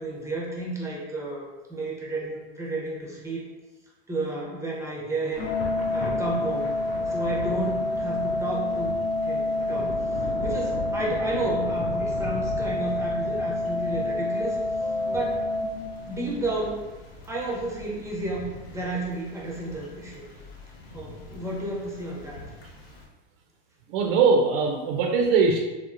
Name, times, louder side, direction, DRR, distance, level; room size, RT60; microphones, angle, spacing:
voice 1, 0.0-3.5 4.1-5.5 5.9-6.7 7.1-10.0 10.4-14.6 15.1-15.5 16.1-16.8 17.2-20.3 20.9-22.4, right 2 dB, 10° right, -3 dB, 0.6 m, -32 dB
Thunder / Rain, 5.3-23.0, left 1 dB, 90° left, 0.6 m, -39 dB
Organ, 5.4-16.4, left 2 dB, 35° left, 0.7 m, -28 dB
voice 2, 23.9-25.6, right 4 dB, 65° right, 1 dB, 0.5 m, -21 dB
2.8 x 2.0 x 2.4 m, 1.1 s
hypercardioid pair, 110°, 30 cm